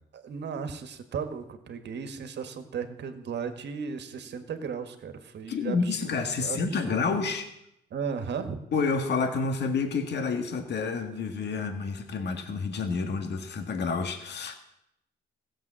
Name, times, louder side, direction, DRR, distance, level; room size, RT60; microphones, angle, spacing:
voice 1, 0.1-6.6 6.9-7.0 7.9-8.6, right 6 dB, 60° right, 8 dB, 1.6 m, -35 dB
voice 2, 5.5-7.5 8.7-14.6, left 4 dB, 60° left, 6 dB, 1.8 m, -29 dB
15.5 x 7.5 x 7.5 m, 0.82 s
cardioid pair, 90°, 20 cm